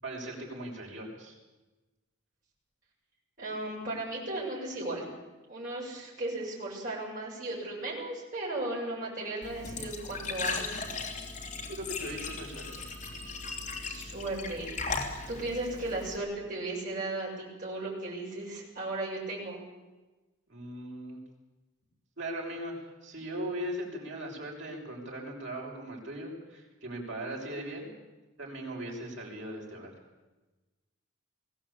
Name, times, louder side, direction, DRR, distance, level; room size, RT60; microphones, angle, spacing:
voice 1, 0.0-1.4 11.7-12.7 20.5-21.2 22.2-27.9 28.4-29.9, right 1 dB, 65° right, -1 dB, 6.5 m, -39 dB
voice 2, 3.4-5.0 5.5-10.8 13.8-19.6, right 2 dB, 40° right, -5 dB, 7.4 m, -36 dB
Glass / Trickle dribble / Fill (with liquid), 9.4-16.2, left 4 dB, 40° left, 3.2 m, -37 dB
21.0 x 17.5 x 8.8 m, 1.1 s
head